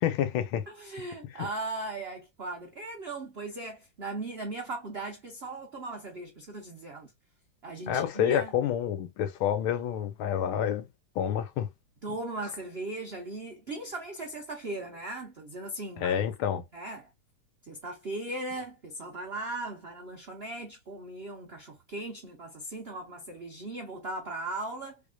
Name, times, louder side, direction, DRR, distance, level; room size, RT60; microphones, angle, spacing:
voice 1, 0.0-0.7 1.4-1.5 7.9-10.9 11.2-11.7 16.0-16.6, left 9 dB, 85° left, 1.6 m, -28 dB
voice 2, 0.7-7.1 7.6-8.5 12.0-16.2 16.7-17.1 17.6-25.0, right 2 dB, 70° right, 0.5 m, -38 dB
3.5 x 3.2 x 2.3 m
omnidirectional pair, 2.2 m